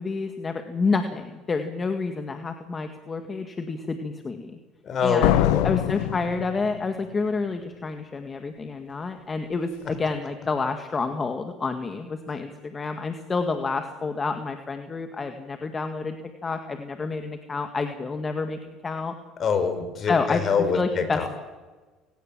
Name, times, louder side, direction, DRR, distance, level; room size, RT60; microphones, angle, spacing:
voice 1, 0.0-4.6 5.0-5.4 5.6-16.2 16.4-19.1 20.1-20.4 20.7-21.3, left 4 dB, 25° left, 7 dB, 2.0 m, -29 dB
voice 2, 4.8-5.7 12.3-12.4 19.4-21.3, left 6 dB, 45° left, 9 dB, 5.0 m, -25 dB
Slam, 5.2-7.1, left 14 dB, 90° left, 1.0 m, -23 dB
28.5 x 18.0 x 7.5 m, 1.3 s
supercardioid pair, 100°, 0 cm